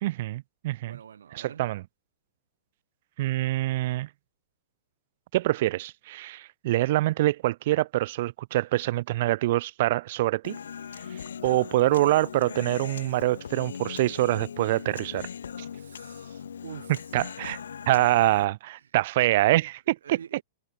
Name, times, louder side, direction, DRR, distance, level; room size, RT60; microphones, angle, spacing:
voice 1, 0.0-1.0 1.3-1.8 3.2-4.1 5.3-10.6 11.4-15.3 17.1-17.6 17.9-20.4, right 16 dB, 60° right, 0.7 m, -25 dB
voice 2, 0.9-1.6 15.7-16.9 20.0-20.4, right 8 dB, 85° right, 3.0 m, -45 dB
Human voice, 10.4-18.5, left 7 dB, 90° left, 0.4 m, -40 dB
hypercardioid pair, 130°, 0 cm